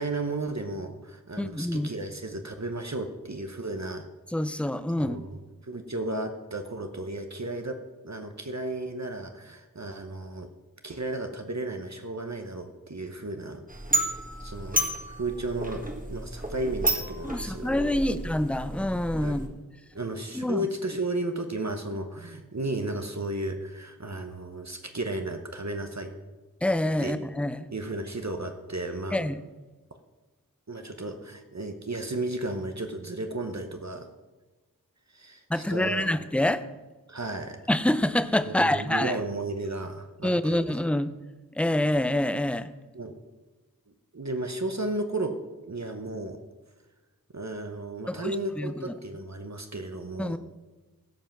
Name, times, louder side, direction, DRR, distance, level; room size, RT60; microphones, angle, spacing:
voice 1, 0.0-4.1 5.0-5.4 5.6-7.8 8.0-10.5 10.8-13.6 14.4-18.2 19.2-19.4 19.9-26.1 27.0-27.2 27.7-29.3 30.7-34.1 35.1-36.1 37.1-37.6 38.5-40.7 42.9-43.1 44.1-45.4 45.6-46.4 47.3-50.4, right 2 dB, 50° right, 6 dB, 0.9 m, -34 dB
voice 2, 1.4-1.9 4.3-5.2 17.2-19.5 20.3-20.6 26.6-27.7 29.1-29.4 35.5-36.6 37.7-39.2 40.2-41.1 41.6-42.7 48.1-48.9 50.2-50.4, left 1 dB, 5° left, 13 dB, 0.5 m, -26 dB
sound 1, 13.7-19.5, right 1 dB, 25° right, 1.6 m, -31 dB
15.5 x 5.6 x 5.8 m, 1.2 s
wide cardioid pair, 40°, 35 cm